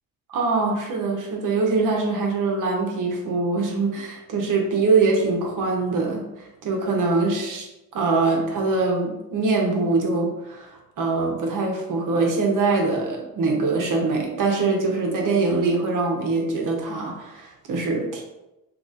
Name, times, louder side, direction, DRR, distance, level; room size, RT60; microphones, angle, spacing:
voice 1, 0.3-7.7 7.9-18.2, right 3 dB, 60° right, 0 dB, 0.7 m, -23 dB
2.9 x 2.4 x 3.9 m, 0.94 s
cardioid pair, 125°, 37 cm